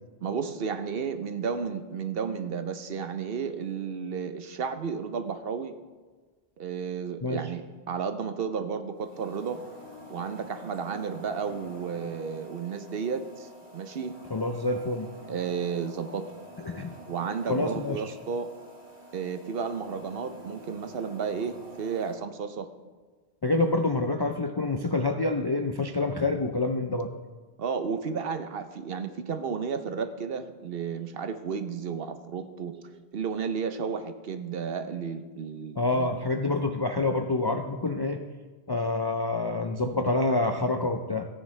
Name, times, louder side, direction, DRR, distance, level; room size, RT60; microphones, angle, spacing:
voice 1, 0.2-5.7 6.6-7.6 7.9-9.6 10.1-14.1 15.3-16.3 17.1-18.5 19.1-22.7 27.6-36.1, right 6 dB, 60° right, 9 dB, 0.9 m, -32 dB
sound 1, 8.9-22.1, right 1 dB, 75° right, 2.5 m, -47 dB
voice 2, 14.3-15.1 16.7-16.9 17.5-18.1 23.4-27.1 35.8-38.2 38.7-41.3, left 2 dB, 40° left, 5 dB, 0.3 m, -27 dB
14.5 x 9.9 x 3.2 m, 1.4 s
omnidirectional pair, 1.1 m